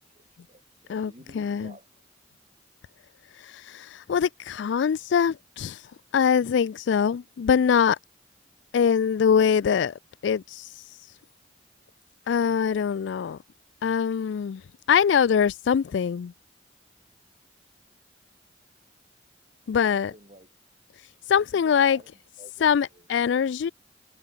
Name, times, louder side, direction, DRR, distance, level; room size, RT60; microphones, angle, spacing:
voice 1, 0.1-1.9 12.7-13.0 19.9-20.5 21.3-23.1, right 1 dB, 35° right, 6.6 m, -52 dB
voice 2, 0.9-1.7 3.7-5.8 6.1-8.0 8.7-9.9 10.2-10.6 12.3-13.4 13.8-14.6 14.9-16.3 19.7-20.1 21.3-22.0 22.6-23.7, left 7 dB, 80° left, 0.3 m, -23 dB
head